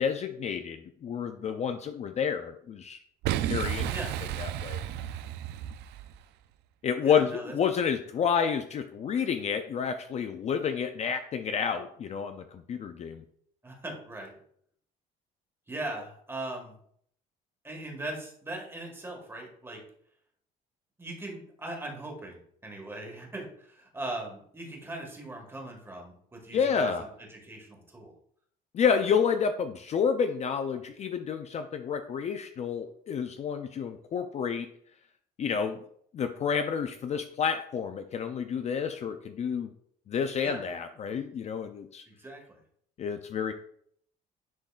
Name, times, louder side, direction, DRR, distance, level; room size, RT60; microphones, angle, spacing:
voice 1, 0.0-3.0 3.4-4.0 4.4-4.8 6.8-13.2 26.5-27.1 28.7-34.7 35.4-35.8 36.1-39.7 40.1-42.0 43.0-43.5, left 7 dB, 40° left, 8 dB, 0.4 m, -29 dB
Boom, 3.2-6.2, right 11 dB, 80° right, 0.4 m, -32 dB
voice 2, 3.9-4.2 7.0-7.5 13.6-14.4 15.7-16.7 17.6-19.8 21.0-28.1 40.4-40.7 42.1-42.6, right 2 dB, 15° right, 1 dB, 1.8 m, -40 dB
10.5 x 3.9 x 2.5 m, 0.65 s
cardioid pair, 110°, 17 cm